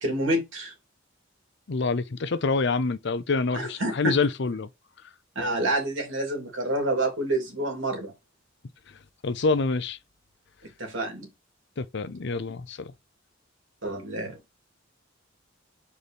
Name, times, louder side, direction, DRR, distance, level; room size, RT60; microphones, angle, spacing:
voice 1, 0.0-0.7 3.5-4.1 5.3-8.1 10.8-11.3 13.8-14.4, right 1 dB, 85° right, 2.8 m, -28 dB
voice 2, 1.7-4.7 9.2-10.0 11.8-12.9, left 4 dB, 60° left, 0.6 m, -26 dB
4.8 x 4.3 x 5.2 m
head